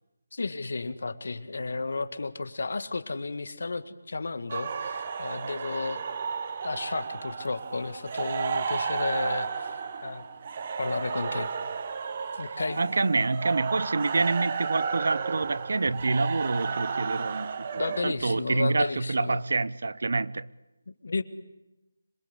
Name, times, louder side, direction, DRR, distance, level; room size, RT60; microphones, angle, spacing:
voice 1, 0.3-6.0 6.6-9.7 10.0-10.3 10.8-11.5 12.4-12.8 17.8-19.4 20.9-21.2, left 3 dB, 55° left, 1.8 m, -33 dB
sound 1, 4.5-18.0, right 5 dB, 25° right, 1.0 m, -33 dB
voice 2, 12.4-20.5, right 3 dB, 55° right, 0.8 m, -27 dB
26.0 x 22.5 x 8.3 m
figure-of-eight pair, 180°, 0 cm